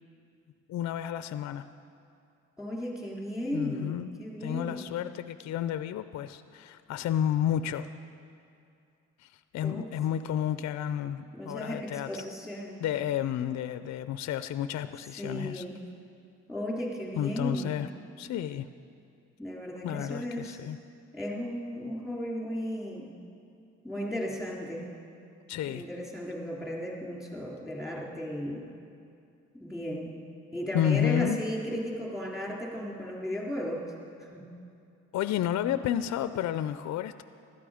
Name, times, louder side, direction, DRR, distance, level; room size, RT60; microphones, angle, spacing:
voice 1, 0.7-1.7 3.5-4.1 4.4-7.9 9.2-12.1 12.8-15.6 17.2-17.9 18.2-18.7 19.8-20.8 25.5-25.8 30.7-31.4 35.1-37.2, left 10 dB, 60° left, 12 dB, 0.5 m, -31 dB
voice 2, 2.6-4.8 9.6-9.9 11.3-11.8 12.1-12.8 15.2-15.7 16.5-17.8 19.4-20.6 21.1-23.1 23.8-24.8 25.7-28.6 29.5-30.1 30.5-33.9 34.2-34.4, equal, ahead, -3 dB, 3.4 m, -35 dB
16.5 x 12.0 x 5.0 m, 2.5 s
cardioid pair, 90°, 30 cm